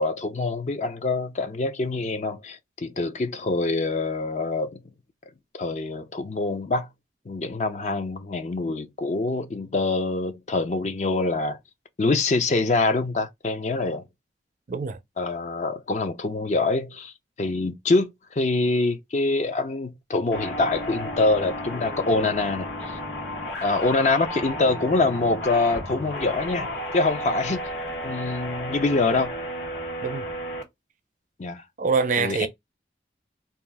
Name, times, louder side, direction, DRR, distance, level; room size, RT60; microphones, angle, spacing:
voice 1, 0.0-4.8 5.6-6.9 7.3-11.6 12.0-14.0 15.2-23.0 23.6-26.7 26.9-27.6 28.0-29.3 31.4-31.6 32.2-32.5, left 3 dB, 40° left, 0.5 m, -25 dB
voice 2, 14.7-15.0 30.0-30.3 31.8-32.5, right 5 dB, 45° right, 0.4 m, -24 dB
sound 1, 20.3-30.6, equal, 75° left, 1.6 m, -33 dB
2.8 x 2.3 x 3.3 m
head